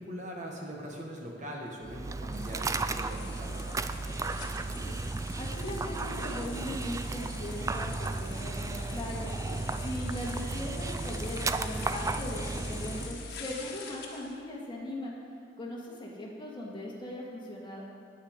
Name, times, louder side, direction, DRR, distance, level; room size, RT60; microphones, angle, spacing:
voice 1, 0.0-4.4, equal, 40° right, -1 dB, 1.4 m, -42 dB
Dog, 1.8-13.1, right 3 dB, 15° right, 0.3 m, -34 dB
sound 1, 2.3-14.3, left 4 dB, 60° left, 1.5 m, -45 dB
voice 2, 5.4-9.3 9.8-15.1 15.6-17.8, left 1 dB, 25° left, -3 dB, 2.0 m, -39 dB
9.8 x 9.1 x 6.5 m, 2.3 s
head